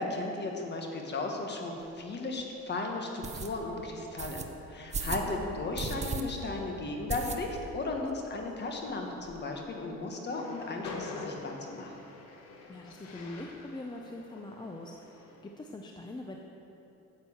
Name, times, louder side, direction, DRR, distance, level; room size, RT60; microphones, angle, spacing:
voice 1, 0.0-4.4 4.7-11.9, left 2 dB, 35° left, 2 dB, 1.5 m, -35 dB
sound 1, 1.8-1.9 2.4-2.5 3.2-3.5 4.2-4.4 4.9-5.3 5.7-6.2 6.5-6.6 7.1-7.7 8.1-8.2 8.4-8.5 8.8-9.4, right 5 dB, 25° right, 0.7 m, -36 dB
voice 2, 5.1-5.6 12.7-16.4, left 2 dB, 15° left, 2 dB, 0.6 m, -43 dB
Train, 10.2-15.5, left 3 dB, 65° left, 1.6 m, -45 dB
10.0 x 7.4 x 7.2 m, 2.9 s
cardioid pair, 135°, 29 cm